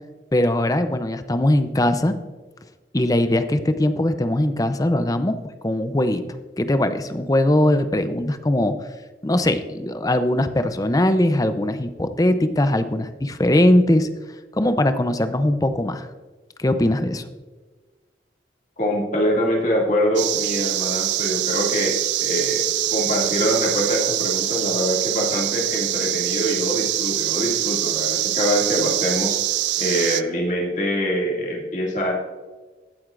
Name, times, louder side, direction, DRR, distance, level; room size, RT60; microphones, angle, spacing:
voice 1, 0.3-2.1 2.9-5.4 5.6-6.2 6.6-8.8 9.2-14.1 14.5-16.1 16.6-17.2, left 1 dB, 20° left, 10 dB, 0.5 m, -20 dB
voice 2, 18.8-22.7 22.9-29.4 29.8-32.1, equal, 45° left, -2 dB, 2.4 m, -24 dB
sound 1, 20.2-30.2, right 15 dB, 85° right, 0.4 m, -24 dB
16.0 x 7.8 x 2.5 m, 1.4 s
head